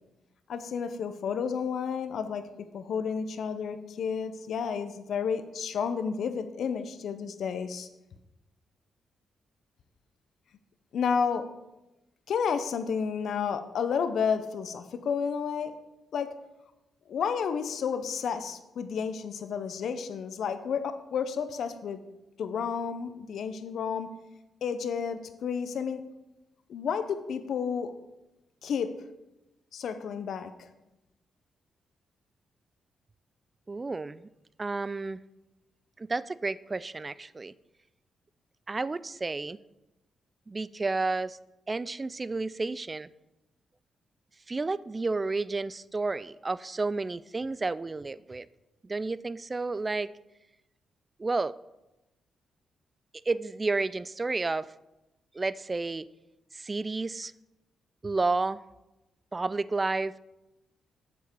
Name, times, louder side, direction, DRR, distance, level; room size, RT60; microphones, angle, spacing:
voice 1, 0.5-7.9 10.9-11.4 12.3-15.8 16.1-16.3 17.1-22.0 22.4-24.1 24.6-26.0 26.7-27.9 28.6-28.9 29.7-30.7, left 6 dB, 70° left, 10 dB, 0.7 m, -31 dB
voice 2, 33.7-34.3 34.6-35.2 36.0-37.5 38.7-39.6 40.5-41.4 41.7-43.1 44.5-48.5 48.8-50.1 51.2-51.5 53.3-54.7 55.3-56.1 56.5-57.3 58.0-58.6 59.3-60.2, right 3 dB, 30° right, 18 dB, 0.3 m, -31 dB
7.3 x 6.9 x 4.6 m, 0.98 s
supercardioid pair, 60°, 0 cm